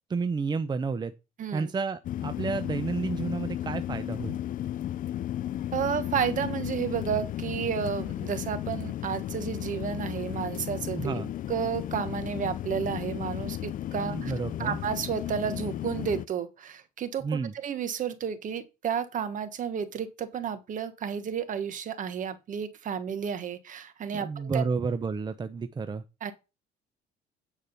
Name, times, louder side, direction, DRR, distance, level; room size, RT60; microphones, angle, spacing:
voice 1, 0.1-1.1 1.5-4.4 10.9-11.3 14.0-14.8 17.2-17.5 24.1-26.0, right 4 dB, 25° right, 0.7 m, -31 dB
voice 2, 1.4-1.7 5.7-11.2 11.5-14.3 14.6-17.3 17.5-24.6 26.2-26.3, right 8 dB, 50° right, 1.4 m, -32 dB
sound 1, 2.0-16.3, left 12 dB, 55° left, 0.5 m, -34 dB
9.2 x 4.9 x 5.6 m
cardioid pair, 110°, 17 cm